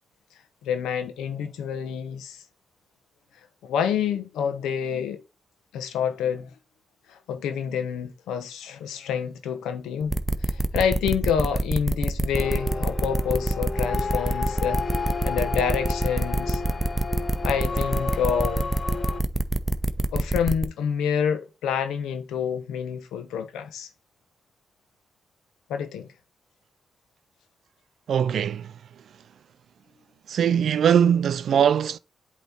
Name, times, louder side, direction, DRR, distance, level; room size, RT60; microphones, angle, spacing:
voice 1, 0.6-2.4 3.6-5.2 5.7-6.5 7.1-14.8 15.2-16.6 17.4-18.7 20.1-23.9 25.7-26.1, left 7 dB, 90° left, 0.9 m, -28 dB
sound 1, 10.1-20.7, right 1 dB, 15° right, 0.8 m, -25 dB
sound 2, 12.3-19.2, left 4 dB, 50° left, 1.0 m, -32 dB
voice 2, 28.1-28.7 30.3-32.0, right 8 dB, 75° right, 0.4 m, -21 dB
8.1 x 3.1 x 4.2 m
supercardioid pair, 50°, 0 cm